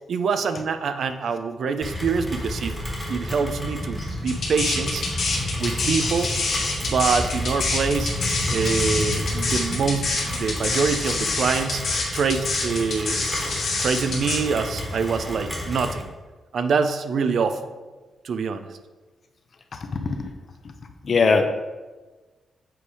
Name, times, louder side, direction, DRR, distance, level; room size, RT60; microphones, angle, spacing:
voice 1, 0.1-2.7 3.1-5.0 5.6-6.3 6.8-8.1 8.5-11.8 12.1-13.3 13.8-16.1 16.5-17.6 18.2-18.7, right 5 dB, 55° right, 9 dB, 0.4 m, -25 dB
Rain, 1.8-16.0, left 1 dB, 5° right, 1.3 m, -30 dB
sound 1, 4.3-14.4, left 3 dB, 60° left, 1.6 m, -26 dB
voice 2, 21.0-21.5, left 4 dB, 35° left, 6 dB, 0.5 m, -19 dB
7.6 x 3.3 x 4.8 m, 1.3 s
wide cardioid pair, 175°, 0 cm